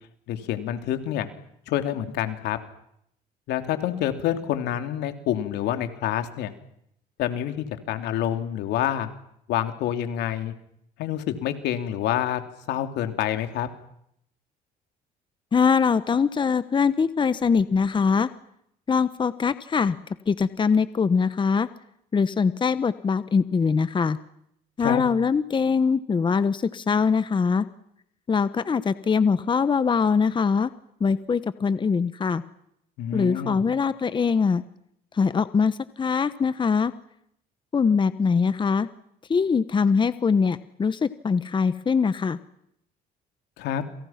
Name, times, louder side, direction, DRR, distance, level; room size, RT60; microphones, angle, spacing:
voice 1, 0.3-1.3 1.7-2.6 3.5-6.5 7.2-9.1 9.5-10.5 11.0-12.4 12.7-13.7 24.8-25.0 33.0-33.6 43.6-43.8, left 11 dB, 85° left, 8 dB, 3.1 m, -27 dB
voice 2, 15.5-18.3 18.9-20.0 20.3-21.7 22.1-24.2 24.8-27.7 28.3-30.7 31.0-32.4 33.1-34.6 35.1-36.9 37.7-38.9 39.3-42.4, left 5 dB, 30° left, 14 dB, 1.2 m, -22 dB
29.0 x 28.0 x 5.9 m, 0.74 s
cardioid pair, 110°, 17 cm